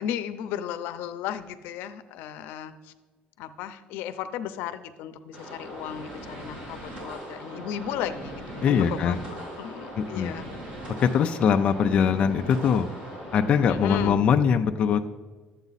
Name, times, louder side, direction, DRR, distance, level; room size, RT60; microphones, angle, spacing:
voice 1, 0.0-2.9 3.4-9.2 9.6-10.5 13.7-14.2, left 10 dB, 80° left, 11 dB, 0.6 m, -35 dB
sound 1, 5.3-14.1, equal, 35° right, 3.9 m, -39 dB
voice 2, 8.6-9.2 10.0-10.3 11.0-12.9 13.3-15.0, left 7 dB, 35° left, 6 dB, 0.4 m, -22 dB
12.0 x 8.0 x 4.0 m, 1.3 s
cardioid pair, 175°, 3 cm